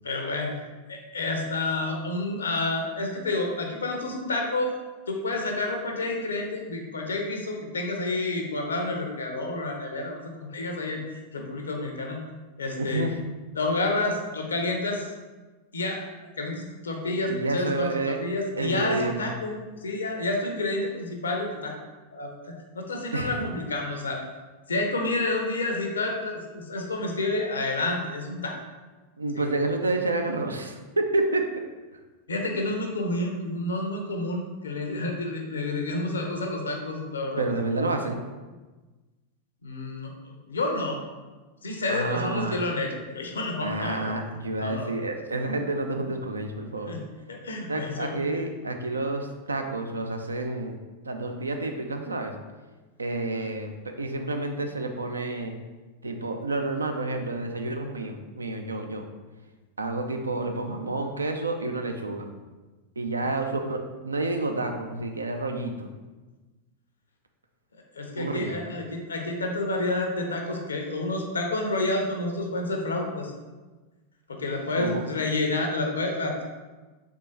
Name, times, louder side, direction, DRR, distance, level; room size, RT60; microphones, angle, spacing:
voice 1, 0.0-0.5 0.9-4.7 5.1-11.0 11.3-12.2 12.6-13.0 13.5-15.0 15.7-16.0 16.4-21.7 22.1-24.2 24.7-28.6 29.3-29.5 32.3-37.4 39.6-41.0 41.6-44.1 44.6-44.9 46.9-47.0 47.3-48.2 63.2-63.3 67.9-73.3 74.3-76.3, left 2 dB, 70° left, 2 dB, 0.6 m, -29 dB
voice 2, 12.8-13.1 17.3-18.2 18.6-19.3 23.1-23.5 29.2-31.5 37.4-38.2 41.9-42.6 43.6-46.9 47.7-50.8 51.0-52.3 53.0-55.5 56.0-59.1 59.8-62.3 63.0-65.9 68.1-68.6 74.8-75.0, right 2 dB, 75° right, 5 dB, 0.4 m, -29 dB
3.6 x 3.6 x 2.6 m, 1.2 s
figure-of-eight pair, 90°, 0 cm